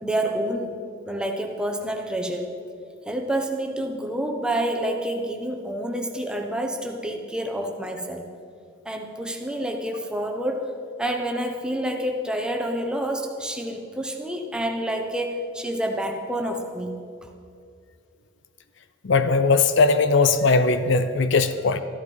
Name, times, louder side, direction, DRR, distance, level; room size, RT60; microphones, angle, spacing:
voice 1, 0.0-0.8 1.0-2.5 3.0-8.3 8.8-10.7 11.0-17.3, right 1 dB, 5° right, 2 dB, 1.1 m, -28 dB
voice 2, 19.0-21.8, left 4 dB, 60° left, 11 dB, 0.6 m, -19 dB
13.5 x 12.0 x 5.5 m, 2.4 s
head